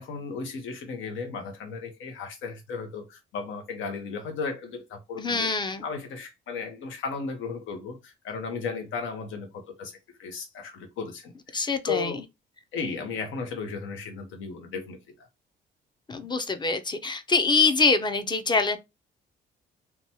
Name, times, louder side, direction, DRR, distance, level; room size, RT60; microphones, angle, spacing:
voice 1, 0.0-5.5 5.8-12.2 12.7-15.3, left 5 dB, 80° left, 0.8 m, -35 dB
voice 2, 5.2-5.8 11.5-12.2 16.1-18.8, left 4 dB, 20° left, 0.5 m, -24 dB
2.9 x 2.2 x 2.7 m
cardioid pair, 90°, 20 cm